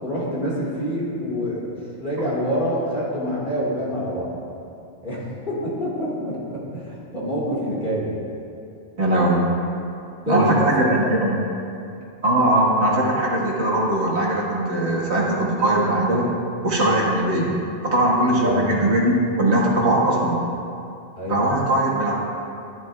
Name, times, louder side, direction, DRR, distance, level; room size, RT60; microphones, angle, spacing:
voice 1, 0.0-4.3 5.0-5.2 5.5-8.2 10.3-11.1 18.4-18.7 21.2-21.4, equal, 45° left, -7 dB, 1.9 m, -26 dB
voice 2, 9.0-9.5 10.3-11.4 12.2-16.3 16.6-17.5 17.8-20.4 21.3-22.1, right 1 dB, 70° right, -4 dB, 1.8 m, -20 dB
11.0 x 10.5 x 2.3 m, 2.6 s
omnidirectional pair, 1.2 m